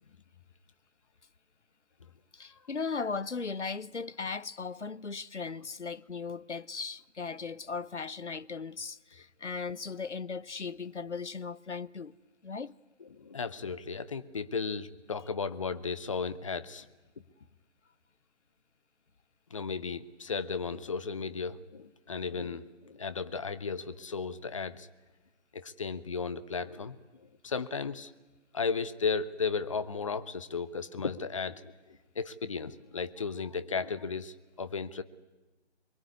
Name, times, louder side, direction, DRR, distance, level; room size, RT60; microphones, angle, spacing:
voice 1, 2.3-12.2 12.4-12.7, left 5 dB, 80° left, 0.8 m, -37 dB
voice 2, 13.1-16.9 19.5-24.9 25.5-27.0 27.4-28.1 28.5-31.7 32.2-35.0, left 5 dB, 30° left, 0.8 m, -35 dB
23.5 x 22.5 x 9.6 m
figure-of-eight pair, 145°, 35 cm